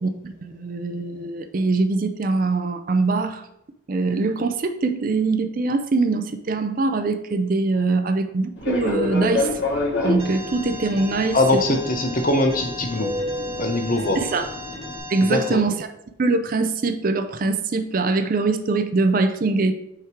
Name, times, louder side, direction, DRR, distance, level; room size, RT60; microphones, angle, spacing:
voice 1, 0.0-3.4 3.9-9.5 10.0-11.8 14.1-14.5 15.1-15.9 16.2-19.7, right 3 dB, 45° right, 9 dB, 0.4 m, -23 dB
Fixed-wing aircraft airplane, 8.6-15.0, left 2 dB, 65° left, 2.1 m, -28 dB
Alarm, 10.2-15.5, left 1 dB, 30° right, 1.1 m, -37 dB
voice 2, 11.3-13.1 13.6-14.2 15.2-15.6, left 2 dB, 45° left, 4 dB, 0.9 m, -22 dB
5.6 x 3.6 x 4.6 m, 0.81 s
head